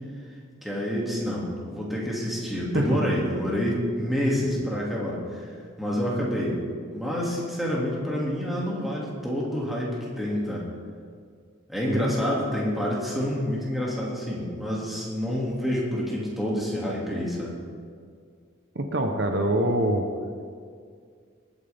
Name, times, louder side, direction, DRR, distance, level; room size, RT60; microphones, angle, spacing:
voice 1, 0.6-5.5 5.8-6.6 6.9-10.7 11.7-17.5, equal, ahead, -5 dB, 2.3 m, -28 dB
voice 2, 18.7-20.1, right 1 dB, 55° right, 4 dB, 0.9 m, -24 dB
21.0 x 9.3 x 3.5 m, 2.1 s
head